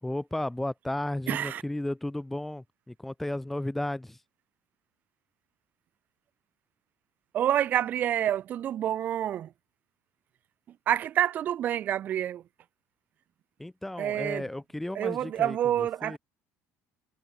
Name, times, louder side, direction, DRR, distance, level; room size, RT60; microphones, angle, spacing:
voice 1, 0.0-4.2 13.6-16.2, left 1 dB, 5° left, 2.7 m, -34 dB
voice 2, 1.3-1.6 7.3-9.5 10.9-12.4 14.0-14.4 14.9-16.2, right 11 dB, 35° right, 1.7 m, -28 dB
cardioid pair, 180°, 5 cm